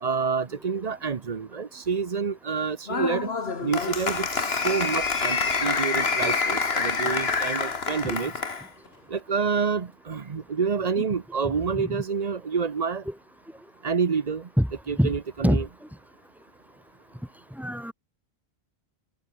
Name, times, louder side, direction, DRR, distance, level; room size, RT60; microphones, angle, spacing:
voice 1, 0.0-3.3 3.6-8.3 9.1-13.0 13.8-14.5 14.9-15.6, right 5 dB, 40° right, 0.9 m, -28 dB
Applause, 2.9-8.7, left 4 dB, 75° left, 2.0 m, -27 dB
voice 2, 17.6-17.9, equal, ahead, 2.6 m, -24 dB
omnidirectional pair, 1.1 m